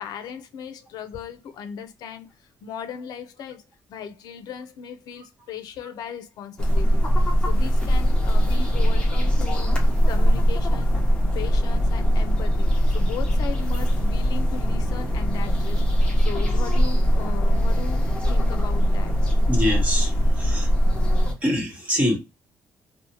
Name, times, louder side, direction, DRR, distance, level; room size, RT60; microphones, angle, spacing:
voice 1, 0.0-3.6 3.9-9.7 10.0-10.9 11.3-19.2, left 7 dB, 80° left, 0.4 m, -37 dB
sound 1, 6.6-21.3, equal, 15° left, 0.8 m, -21 dB
voice 2, 19.5-20.9 21.4-22.2, left 1 dB, 20° right, 1.1 m, -25 dB
2.7 x 2.1 x 2.8 m
cardioid pair, 125°, 7 cm